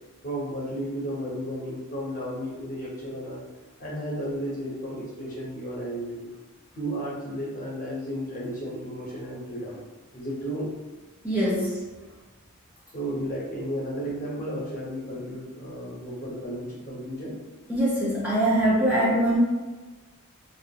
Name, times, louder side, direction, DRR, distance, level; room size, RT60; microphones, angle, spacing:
voice 1, 0.2-3.4 3.8-6.3 6.7-9.8 10.1-10.7 12.9-17.4, equal, 40° left, -5 dB, 0.7 m, -33 dB
voice 2, 11.2-11.8 17.7-19.4, right 1 dB, 5° right, -7 dB, 0.5 m, -23 dB
2.3 x 2.2 x 2.7 m, 1.2 s
head